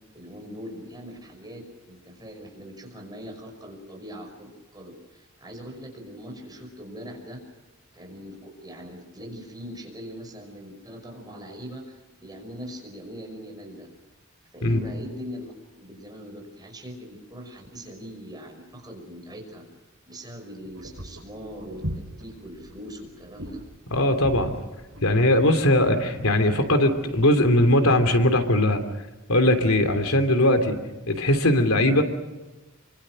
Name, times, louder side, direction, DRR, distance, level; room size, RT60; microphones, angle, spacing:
voice 1, 0.1-7.4 7.9-13.9 14.5-19.6 20.1-21.8 22.2-23.6, equal, 20° right, 2 dB, 5.7 m, -41 dB
sound 1, 20.6-27.2, equal, 85° right, 5.8 m, -40 dB
voice 2, 23.9-24.5 25.0-28.8 29.3-30.8 31.1-32.0, left 1 dB, 90° left, 7 dB, 2.9 m, -20 dB
27.5 x 24.5 x 6.4 m, 1.1 s
head